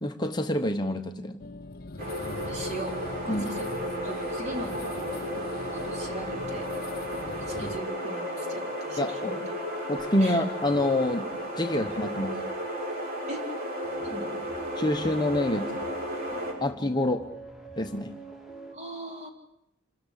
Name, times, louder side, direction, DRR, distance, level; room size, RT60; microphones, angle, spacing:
voice 1, 0.0-1.4 3.3-3.4 9.0-9.4 9.9-11.3 11.6-12.4 14.7-15.9 16.6-17.3 17.8-18.1, left 1 dB, 20° left, 5 dB, 1.0 m, -27 dB
sound 1, 1.4-7.8, left 2 dB, 50° left, 0.9 m, -41 dB
sound 2, 2.0-16.5, equal, 50° right, 6.7 m, -34 dB
voice 2, 2.4-3.8 4.0-5.4 5.8-6.7 7.1-9.4 10.2-10.4 13.3-13.5 14.1-14.4 18.7-19.3, right 1 dB, 35° right, 2 dB, 3.8 m, -40 dB
sound 3, 9.3-18.8, right 2 dB, ahead, 2.2 m, -45 dB
26.5 x 13.5 x 10.0 m, 0.82 s
head